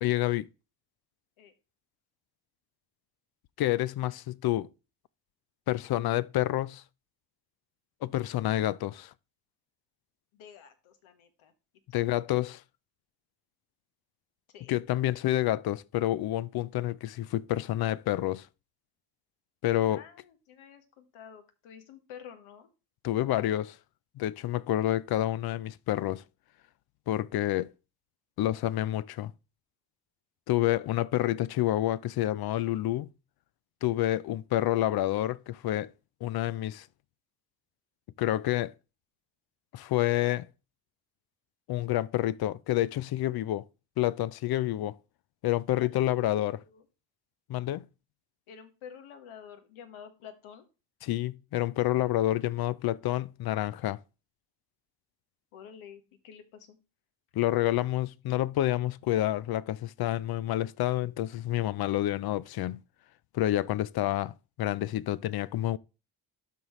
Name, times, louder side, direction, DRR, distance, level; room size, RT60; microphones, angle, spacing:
voice 1, 0.0-0.5 3.6-4.7 5.7-6.8 8.0-9.1 11.9-12.6 14.7-18.5 19.6-20.0 23.0-23.8 24.2-26.2 27.1-27.7 28.4-29.3 30.5-33.1 33.8-35.9 36.2-36.9 38.2-38.7 39.7-40.5 41.7-43.6 44.0-45.0 45.4-46.6 47.5-47.9 51.0-54.0 57.4-62.8 63.3-64.3 64.6-65.8, left 14 dB, 50° left, 0.5 m, -28 dB
voice 2, 10.3-11.5 11.9-12.1 14.5-14.8 19.9-22.7 45.8-46.1 46.5-46.8 48.5-50.6 55.5-56.8, left 8 dB, 75° left, 1.4 m, -50 dB
12.0 x 4.1 x 3.1 m
supercardioid pair, 60°, 49 cm